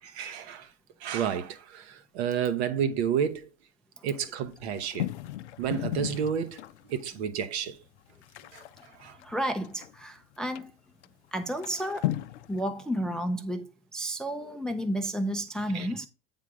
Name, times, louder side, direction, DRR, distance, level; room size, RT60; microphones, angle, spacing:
voice 1, 0.0-0.7 1.0-3.5 4.0-5.1 5.6-7.8 8.5-9.2 15.7-15.9, right 8 dB, 60° right, 0.9 m, -31 dB
sound 1, 4.4-7.0 7.5-7.6 7.8-10.0 10.5-10.6 11.0-11.1 11.5-12.6, left 15 dB, 65° left, 0.5 m, -35 dB
voice 2, 9.2-10.7 11.3-12.2 12.5-16.1, equal, ahead, 0.5 m, -32 dB
8.3 x 3.9 x 4.7 m
figure-of-eight pair, 80°, 37 cm